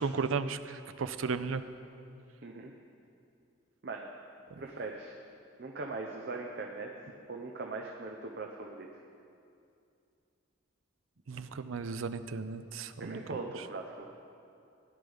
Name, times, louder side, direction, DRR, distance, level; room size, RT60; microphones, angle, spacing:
voice 1, 0.0-1.6 4.5-4.6 11.3-13.4, right 5 dB, 90° right, 11 dB, 0.5 m, -35 dB
voice 2, 4.6-5.2 5.6-8.9 13.0-14.1, right 3 dB, 55° right, 1 dB, 0.7 m, -40 dB
16.5 x 11.0 x 3.5 m, 2.5 s
head